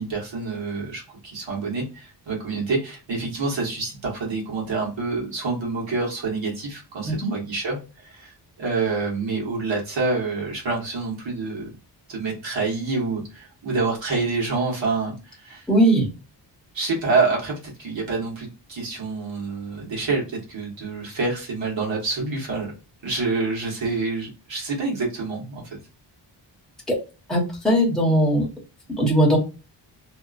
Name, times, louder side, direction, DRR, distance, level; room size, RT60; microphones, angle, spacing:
voice 1, 0.0-11.7 12.1-15.7 16.7-22.7 23.0-25.8, right 3 dB, 90° right, -2 dB, 1.4 m, -27 dB
voice 2, 15.7-16.1 26.9-27.0 27.3-28.5 29.0-29.4, right 1 dB, ahead, -3 dB, 0.9 m, -19 dB
2.7 x 2.4 x 2.4 m, 0.31 s
wide cardioid pair, 175°, 43 cm